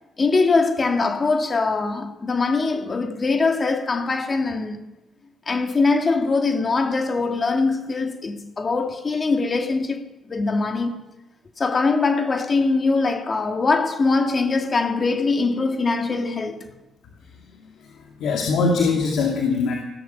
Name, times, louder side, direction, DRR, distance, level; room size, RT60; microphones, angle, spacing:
voice 1, 0.2-4.8 5.5-10.0 10.3-11.0 11.6-16.7, left 3 dB, 35° left, 1.9 m, -22 dB
voice 2, 17.3-19.7, left 4 dB, 80° left, 2.4 m, -23 dB
16.5 x 12.5 x 7.0 m
cardioid pair, 90°, 0 cm